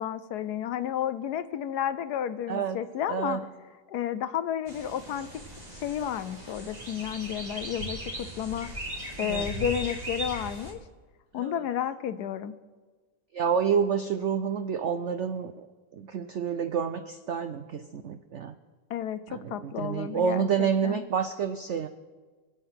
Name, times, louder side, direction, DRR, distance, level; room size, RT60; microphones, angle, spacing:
voice 1, 0.0-3.4 3.9-5.3 5.8-8.7 9.2-10.8 11.3-12.5 18.9-21.0, left 9 dB, 70° left, 13 dB, 1.1 m, -32 dB
voice 2, 3.1-3.4 9.2-9.5 11.4-11.6 13.3-15.7 15.9-18.6 19.3-21.9, right 7 dB, 75° right, 10 dB, 0.6 m, -29 dB
sound 1, 4.7-10.7, equal, 20° right, 2.1 m, -38 dB
25.0 x 8.7 x 5.8 m, 1.4 s
omnidirectional pair, 2.0 m